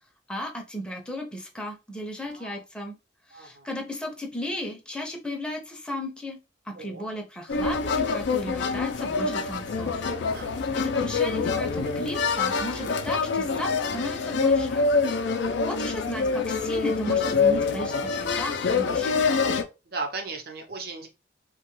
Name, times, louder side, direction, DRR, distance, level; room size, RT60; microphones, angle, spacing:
voice 1, 0.3-3.0 3.3-6.4 6.7-10.1 10.5-14.9 15.7-19.3, left 1 dB, 5° left, 0.6 m, -35 dB
voice 2, 2.3-2.6 3.3-3.7 6.7-7.1 10.3-10.5 15.4-15.7 19.9-21.1, right 3 dB, 60° right, 0.8 m, -37 dB
sound 1, 7.5-19.6, left 4 dB, 80° left, 0.4 m, -25 dB
2.9 x 2.2 x 3.1 m
head